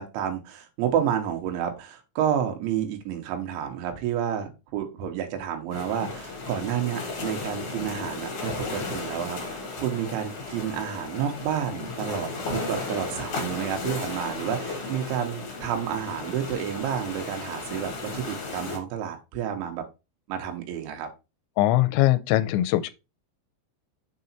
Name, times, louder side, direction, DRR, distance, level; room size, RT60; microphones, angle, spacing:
voice 1, 0.0-19.8 20.3-21.1, right 9 dB, 90° right, 3.5 m, -30 dB
sound 1, 5.7-18.8, left 3 dB, 45° left, 2.3 m, -35 dB
voice 2, 21.6-22.9, left 15 dB, 80° left, 2.7 m, -21 dB
6.9 x 4.0 x 4.3 m
omnidirectional pair, 5.3 m